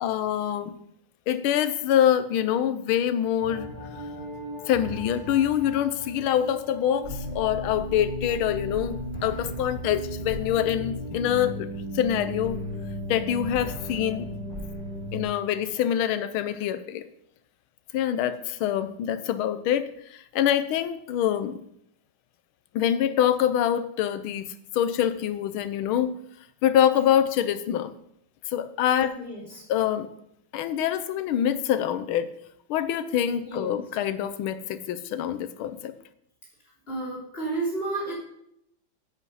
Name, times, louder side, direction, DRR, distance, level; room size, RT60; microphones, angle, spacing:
voice 1, 0.0-0.8 1.3-3.7 4.7-11.7 11.9-12.6 13.1-14.3 15.1-17.0 17.9-21.6 22.7-24.5 24.7-26.2 26.6-27.9 28.5-29.3 29.7-30.1 30.5-32.3 32.7-35.9, left 10 dB, 90° left, 12 dB, 1.6 m, -25 dB
sound 1, 3.4-15.2, equal, 50° right, 5.1 m, -35 dB
voice 2, 29.1-29.6 33.5-33.8 36.9-38.1, right 2 dB, 25° left, -6 dB, 3.6 m, -31 dB
8.2 x 8.0 x 5.5 m, 0.75 s
omnidirectional pair, 2.2 m